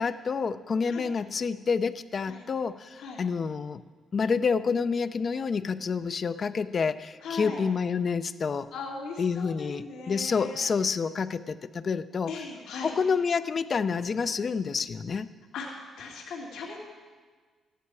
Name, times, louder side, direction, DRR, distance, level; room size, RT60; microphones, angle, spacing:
voice 1, 0.0-3.8 4.1-8.7 9.2-12.3 12.8-15.3, left 5 dB, 45° left, 13 dB, 0.5 m, -28 dB
voice 2, 7.2-7.6 8.7-10.6 12.3-12.9 15.5-16.8, left 4 dB, 90° left, -3 dB, 2.3 m, -38 dB
14.5 x 10.0 x 4.7 m, 1.5 s
cardioid pair, 90°, 0 cm